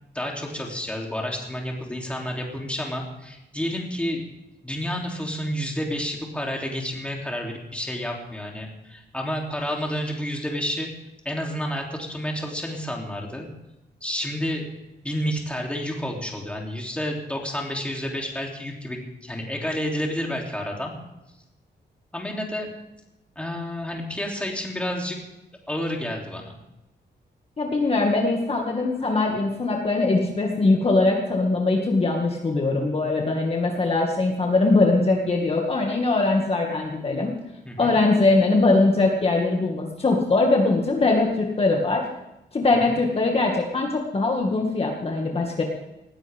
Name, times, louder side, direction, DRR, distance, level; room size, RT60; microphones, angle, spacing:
voice 1, 0.1-4.3 4.6-10.9 11.2-13.5 14.0-14.7 15.0-20.9 22.1-22.7 23.3-25.2 25.7-26.6 37.6-37.9 42.9-43.0, equal, 5° left, 0 dB, 3.1 m, -30 dB
voice 2, 27.6-37.3 37.8-42.0 42.5-45.6, left 3 dB, 35° left, 0 dB, 2.1 m, -21 dB
19.5 x 16.0 x 3.6 m, 0.92 s
wide cardioid pair, 160°, 18 cm